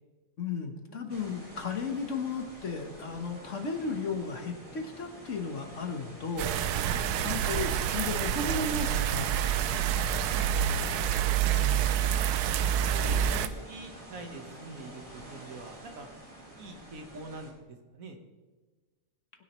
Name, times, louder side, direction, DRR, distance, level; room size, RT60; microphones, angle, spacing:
voice 1, 0.4-9.3 11.4-11.9, left 4 dB, 50° left, 5 dB, 1.5 m, -35 dB
voice 2, 0.9-1.3 6.8-7.1 9.9-10.9 12.0-12.4 12.9-16.1 16.5-18.2, right 2 dB, 60° right, 4 dB, 1.7 m, -45 dB
sound 1, 1.1-17.5, right 1 dB, 20° right, 2.3 m, -48 dB
sound 2, 6.4-13.5, right 9 dB, 80° right, 1.1 m, -27 dB
20.0 x 10.0 x 3.1 m, 1.3 s
omnidirectional pair, 1.6 m